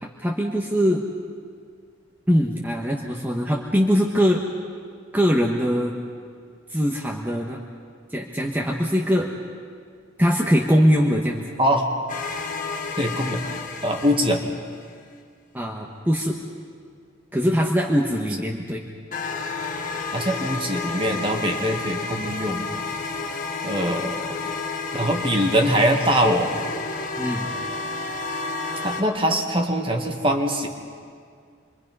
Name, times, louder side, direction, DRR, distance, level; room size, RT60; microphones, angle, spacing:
voice 1, 0.0-1.0 2.3-4.4 5.1-6.0 6.7-7.6 8.1-9.3 10.2-11.5 15.5-16.4 17.3-18.8 27.2-27.5, equal, 10° right, -1 dB, 1.3 m, -22 dB
sound 1, 12.1-14.8 19.1-29.0, left 4 dB, 40° left, 1.5 m, -31 dB
voice 2, 13.0-13.4 13.8-14.4 20.1-22.6 23.6-24.3 24.9-26.5 28.8-30.7, equal, 25° right, 3 dB, 1.9 m, -22 dB
27.5 x 23.0 x 5.5 m, 2.1 s
head